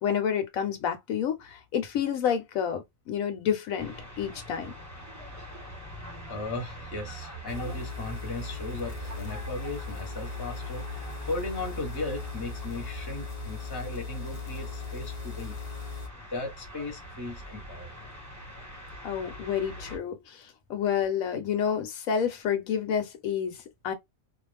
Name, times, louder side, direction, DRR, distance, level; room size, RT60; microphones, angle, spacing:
voice 1, 0.0-4.7 19.0-23.9, left 8 dB, 80° left, 1.0 m, -29 dB
sound 1, 3.8-20.0, right 1 dB, 10° right, 1.1 m, -43 dB
voice 2, 6.3-15.6 16.3-18.0, left 2 dB, 20° left, 0.7 m, -37 dB
sound 2, 7.5-16.1, left 5 dB, 50° left, 0.8 m, -38 dB
2.5 x 2.0 x 3.3 m
omnidirectional pair, 1.4 m